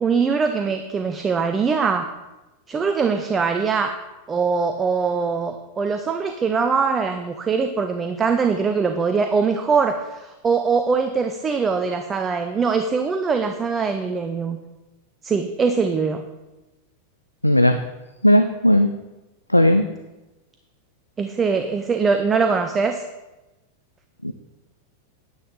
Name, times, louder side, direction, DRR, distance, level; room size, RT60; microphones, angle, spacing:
voice 1, 0.0-2.1 2.7-3.9 4.3-14.6 15.2-16.2 21.2-23.0, right 5 dB, 20° right, 6 dB, 0.6 m, -22 dB
voice 2, 17.4-17.8 18.2-18.9 19.5-19.8 24.2-24.3, left 1 dB, 85° left, 8 dB, 0.4 m, -16 dB
9.8 x 9.4 x 3.8 m, 1.1 s
figure-of-eight pair, 90°, 0 cm